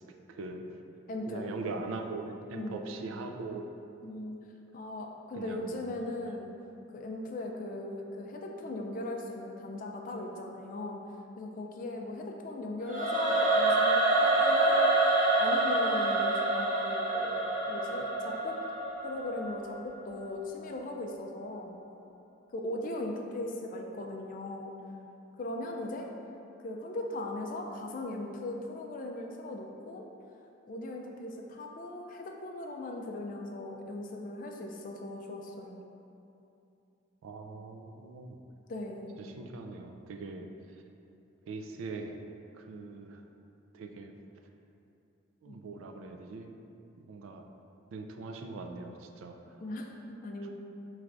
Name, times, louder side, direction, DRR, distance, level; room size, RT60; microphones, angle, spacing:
voice 1, 0.3-0.7 1.3-3.7 5.3-6.1 37.2-38.4 39.2-40.5 41.5-42.2 42.5-43.2 43.7-44.1 45.4-46.5 47.0-47.4 47.9-49.4, right 3 dB, 75° right, 4 dB, 0.3 m, -41 dB
voice 2, 1.1-1.6 2.5-2.9 4.0-4.4 4.7-6.5 6.9-11.0 11.4-18.6 19.0-21.8 22.5-24.7 25.4-26.1 26.6-30.0 30.7-35.8 37.5-37.6 38.7-39.2 45.5-45.6 49.6-50.5, left 1 dB, 40° left, 2 dB, 0.3 m, -39 dB
Singing / Musical instrument, 12.8-19.9, right 2 dB, 40° right, 0.7 m, -27 dB
4.6 x 3.1 x 2.5 m, 2.8 s
head